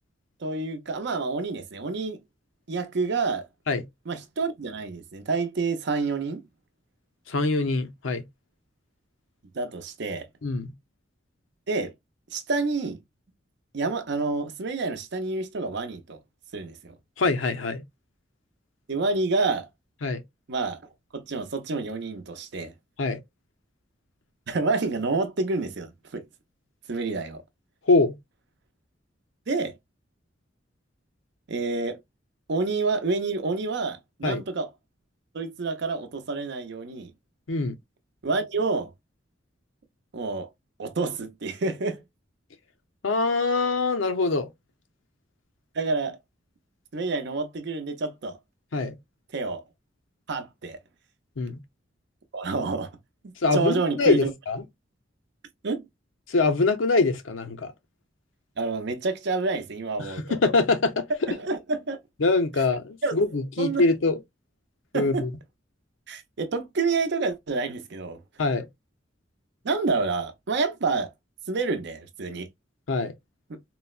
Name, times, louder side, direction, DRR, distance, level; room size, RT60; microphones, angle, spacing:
voice 1, 0.4-2.2 2.7-3.5 4.1-6.4 9.5-10.3 11.7-11.9 12.3-13.0 13.7-16.2 16.5-16.9 18.9-19.7 20.5-20.8 21.1-22.7 24.5-26.2 26.9-27.4 29.5-29.8 31.5-32.0 32.5-34.7 35.3-37.1 38.2-38.9 40.1-40.5 40.8-42.0 45.7-46.2 46.9-48.4 49.3-49.6 50.3-50.8 52.3-52.9 53.2-54.3 55.6-55.9 58.6-60.4 61.3-62.0 63.0-63.1 63.6-63.8 64.9-65.3 66.1-68.2 69.6-71.1 71.5-72.5, right 3 dB, 60° right, 0.6 m, -28 dB
voice 2, 7.3-8.2 10.4-10.7 17.2-17.8 20.0-20.2 23.0-23.2 27.9-28.2 34.2-34.4 37.5-37.7 43.0-44.5 48.7-49.0 51.4-51.6 53.4-54.6 56.3-57.7 60.0-61.0 62.2-64.2 64.9-65.3 68.4-68.7 72.9-73.1, left 3 dB, 85° left, 0.7 m, -24 dB
3.9 x 2.1 x 2.3 m
head